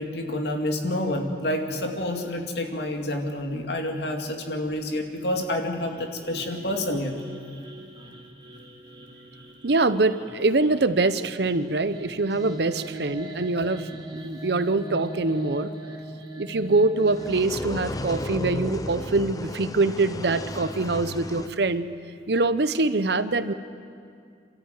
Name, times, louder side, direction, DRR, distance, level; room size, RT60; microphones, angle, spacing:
voice 1, 0.0-7.1, left 1 dB, 70° left, 3 dB, 2.4 m, -28 dB
sound 1, 5.4-17.3, right 1 dB, 25° right, 1.7 m, -41 dB
voice 2, 9.6-15.7 16.4-21.9 22.3-23.5, right 3 dB, 70° right, 12 dB, 0.8 m, -24 dB
sound 2, 17.0-21.5, left 1 dB, 20° left, 0.7 m, -34 dB
27.5 x 13.5 x 9.3 m, 2.3 s
head